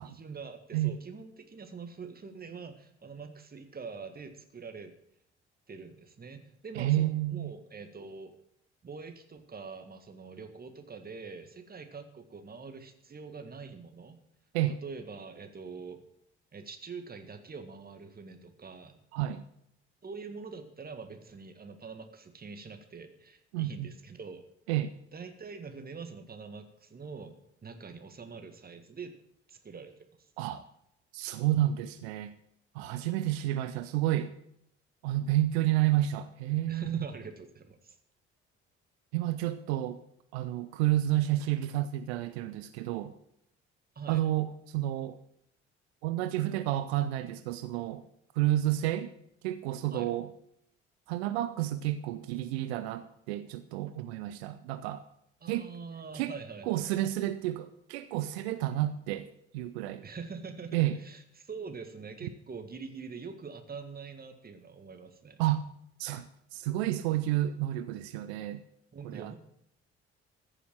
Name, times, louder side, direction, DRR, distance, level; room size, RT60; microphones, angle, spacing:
voice 1, 0.0-4.9 5.7-8.3 8.8-14.2 14.8-16.0 16.5-19.0 20.0-24.4 25.1-29.1 29.5-30.0 32.9-33.0 36.7-38.0 44.0-44.2 49.9-50.1 55.4-56.8 60.0-65.4 68.9-69.3, right 5 dB, 25° right, 7 dB, 1.8 m, -44 dB
voice 2, 6.8-7.5 14.5-14.8 19.1-19.4 23.5-23.9 24.7-24.9 30.4-30.6 31.1-32.3 32.7-34.3 35.0-37.1 39.1-40.0 40.3-43.1 44.1-45.2 46.0-48.0 48.3-49.1 49.4-50.3 51.1-55.0 55.5-55.7 56.1-56.3 56.7-59.3 59.5-60.0 60.7-61.0 65.4-65.7 66.0-68.6 69.0-69.3, right 14 dB, 65° right, 12 dB, 0.7 m, -30 dB
14.5 x 6.9 x 7.6 m, 0.75 s
figure-of-eight pair, 50°, 33 cm